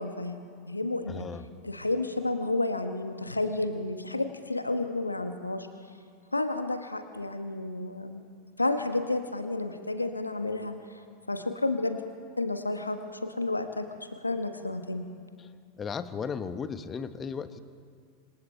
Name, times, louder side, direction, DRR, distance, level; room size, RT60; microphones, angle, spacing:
voice 1, 0.0-1.3 1.6-5.7 6.3-8.2 8.6-12.0 12.4-15.1, left 2 dB, 85° left, 7 dB, 1.3 m, -31 dB
voice 2, 1.1-1.4 15.4-15.5 15.8-17.6, left 6 dB, 20° left, 11 dB, 1.2 m, -35 dB
28.0 x 26.0 x 4.5 m, 2.2 s
figure-of-eight pair, 90°, 0 cm